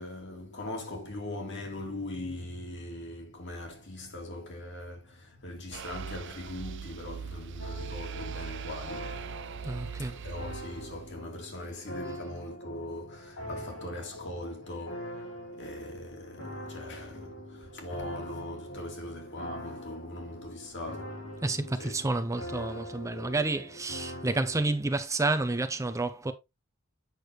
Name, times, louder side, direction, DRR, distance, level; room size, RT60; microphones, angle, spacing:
voice 1, 0.0-9.2 10.0-21.3 21.8-21.9, left 1 dB, 55° left, 2.6 m, -41 dB
sound 1, 5.7-11.2, right 7 dB, 60° right, 0.5 m, -41 dB
sound 2, 7.6-24.7, equal, 80° left, 4.5 m, -43 dB
voice 2, 9.6-10.2 21.4-26.3, right 2 dB, 15° right, 0.5 m, -30 dB
8.3 x 6.2 x 3.1 m
head